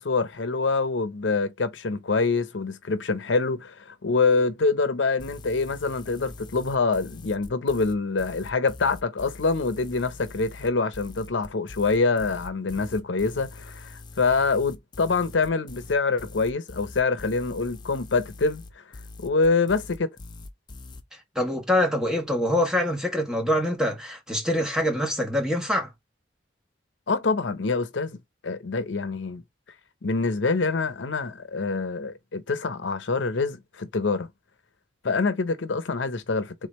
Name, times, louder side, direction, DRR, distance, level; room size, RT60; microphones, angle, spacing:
voice 1, 0.0-18.8 19.2-20.1 27.1-28.2 28.4-29.4 30.0-34.3 35.0-36.7, left 4 dB, 80° left, 0.7 m, -25 dB
sound 1, 5.2-21.0, left 2 dB, 25° left, 0.5 m, -43 dB
voice 2, 21.3-25.9, left 1 dB, 5° right, 1.2 m, -25 dB
3.7 x 3.2 x 4.2 m
head